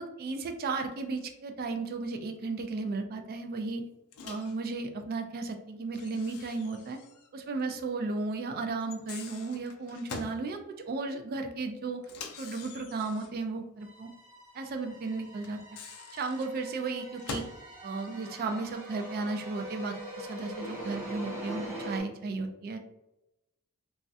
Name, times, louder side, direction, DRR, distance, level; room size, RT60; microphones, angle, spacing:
voice 1, 0.0-3.8 4.2-7.0 7.3-12.0 12.4-14.1 14.5-15.6 16.1-17.4 17.8-22.8, right 3 dB, 45° right, 5 dB, 0.3 m, -34 dB
Microwave oven, 4.1-4.6 5.9-7.3 7.6-7.7 8.8-10.4 12.0-13.5 15.4-17.6, left 4 dB, 75° left, 0.4 m, -44 dB
sound 1, 13.8-22.0, right 1 dB, 10° right, 1.3 m, -43 dB
3.1 x 2.3 x 2.5 m, 0.90 s
head